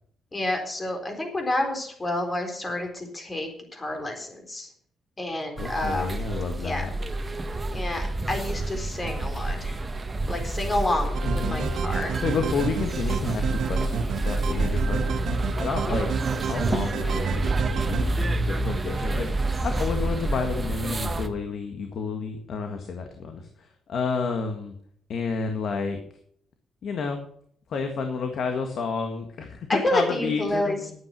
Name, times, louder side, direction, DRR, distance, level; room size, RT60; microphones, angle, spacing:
voice 1, 0.3-4.7 5.2-6.2 6.6-6.8 7.7-9.8 10.3-11.2 11.5-12.1 14.9-15.1 15.9-16.0 29.7-30.8, left 1 dB, 25° left, 4 dB, 4.0 m, -29 dB
voice 2, 5.6-6.9 11.2-15.3 15.6-16.1 16.5-24.7 25.1-26.0 26.8-27.3 27.7-30.9, left 5 dB, 60° left, 5 dB, 1.7 m, -31 dB
sound 1, 5.6-21.3, right 2 dB, 25° right, 1.4 m, -28 dB
sound 2, 11.1-18.0, right 6 dB, 65° right, 1.6 m, -30 dB
11.5 x 9.0 x 6.2 m, 0.64 s
cardioid pair, 90°, 0 cm